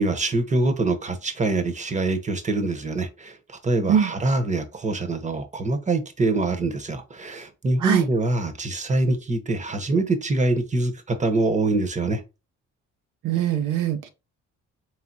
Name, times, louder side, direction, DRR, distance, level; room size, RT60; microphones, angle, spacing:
voice 1, 0.0-12.2, right 2 dB, 25° right, 0.9 m, -24 dB
voice 2, 13.2-14.1, right 9 dB, 85° right, 0.8 m, -22 dB
4.6 x 3.4 x 2.6 m
cardioid pair, 90°, 30 cm